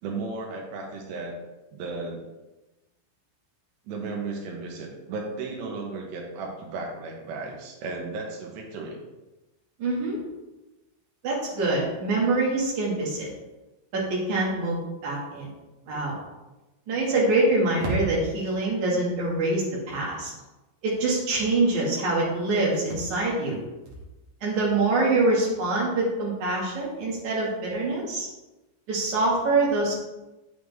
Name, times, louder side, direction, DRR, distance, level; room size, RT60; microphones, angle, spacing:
voice 1, 0.0-1.3 1.7-2.2 3.9-9.0 15.9-16.1, right 3 dB, 70° right, 0 dB, 3.4 m, -35 dB
voice 2, 9.8-10.2 11.2-13.3 13.9-15.5 15.9-16.2 16.9-20.3 20.8-23.6 24.4-28.3 28.9-29.9, right 2 dB, 45° right, -4 dB, 3.1 m, -25 dB
8.5 x 8.2 x 3.6 m, 1.1 s
omnidirectional pair, 5.4 m